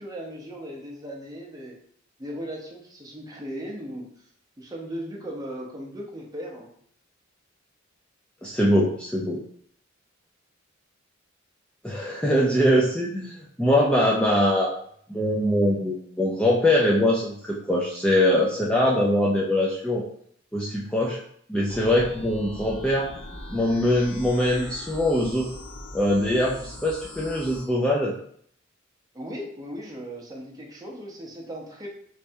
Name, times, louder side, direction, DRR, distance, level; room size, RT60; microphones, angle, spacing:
voice 1, 0.0-1.8 2.2-4.2 4.6-6.7 29.1-31.9, equal, 20° right, -2 dB, 0.8 m, -37 dB
voice 2, 8.4-9.4 11.8-14.7 15.1-20.0 20.5-21.2 21.5-23.1 23.5-25.5 25.9-28.1, left 1 dB, 5° left, -4 dB, 0.4 m, -22 dB
sound 1, 21.7-27.6, left 1 dB, 45° left, 1.2 m, -40 dB
3.3 x 3.2 x 2.7 m, 0.62 s
head